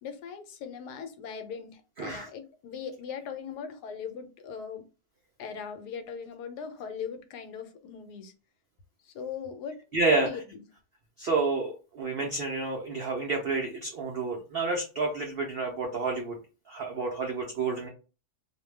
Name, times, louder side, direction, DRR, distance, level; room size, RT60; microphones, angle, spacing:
voice 1, 0.0-4.8 5.4-8.3 9.0-9.8 10.1-10.6, left 6 dB, 90° left, 8 dB, 1.2 m, -39 dB
voice 2, 2.0-2.3 9.9-10.3 11.2-16.4 16.7-17.9, right 3 dB, 90° right, 1 dB, 0.5 m, -29 dB
2.6 x 2.1 x 3.1 m, 0.33 s
omnidirectional pair, 1.7 m